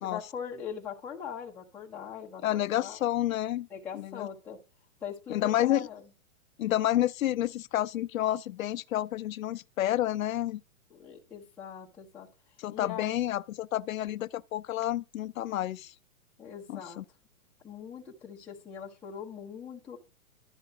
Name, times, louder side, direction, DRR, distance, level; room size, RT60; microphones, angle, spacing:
voice 1, 0.0-3.0 3.7-4.6 5.0-6.0 10.9-12.3 12.7-13.2 16.4-17.0 17.6-20.0, left 7 dB, 5° left, 0.7 m, -41 dB
voice 2, 2.4-3.7 3.9-4.3 5.3-5.9 6.6-10.6 12.6-15.9 16.7-17.0, left 13 dB, 70° left, 0.5 m, -29 dB
11.5 x 4.6 x 7.8 m
hypercardioid pair, 170°, 43 cm